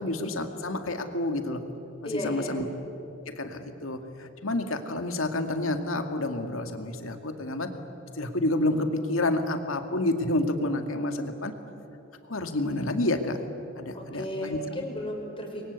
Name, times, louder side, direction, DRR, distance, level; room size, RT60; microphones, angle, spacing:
voice 1, 0.0-1.6 2.1-2.6 3.4-7.7 8.2-11.5 12.3-13.4 13.8-14.6, left 2 dB, 85° left, 6 dB, 2.3 m, -29 dB
voice 2, 2.0-2.6 13.9-15.7, equal, 25° left, 2 dB, 5.3 m, -34 dB
30.0 x 23.5 x 8.4 m, 2.9 s
head